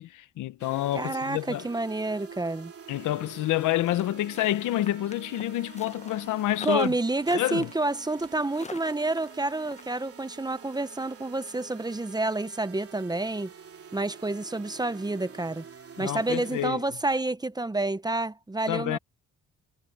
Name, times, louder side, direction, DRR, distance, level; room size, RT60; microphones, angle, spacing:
voice 1, 0.0-1.7 2.9-6.9 7.3-7.7 16.0-16.8 18.7-19.0, left 14 dB, 85° left, 1.1 m, -28 dB
sound 1, 0.6-16.7, right 7 dB, 50° right, 3.5 m, -47 dB
voice 2, 0.9-2.7 6.6-13.5 13.9-15.6 16.0-19.0, right 2 dB, 15° right, 0.9 m, -29 dB
sound 2, 3.9-9.8, left 4 dB, 20° left, 1.1 m, -44 dB
cardioid pair, 90°, 30 cm